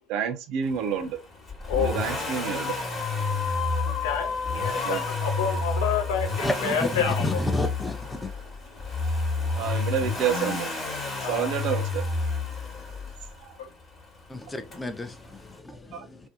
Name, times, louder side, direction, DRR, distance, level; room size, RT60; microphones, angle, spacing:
voice 1, 0.1-1.2 1.8-2.7 4.7-5.0 9.6-10.7 11.3-12.0 15.9-16.1, right 8 dB, 60° right, 0.5 m, -29 dB
Accelerating revving vroom, 1.5-13.4 14.7-14.8, left 3 dB, 35° left, 1.1 m, -30 dB
sound 1, 2.0-7.5, left 6 dB, 55° left, 0.9 m, -34 dB
voice 2, 4.0-7.4 11.2-11.6, left 6 dB, 75° left, 0.6 m, -28 dB
voice 3, 6.4-8.3 14.3-16.3, left 2 dB, 15° left, 0.5 m, -32 dB
2.6 x 2.1 x 2.4 m
hypercardioid pair, 65°, 0 cm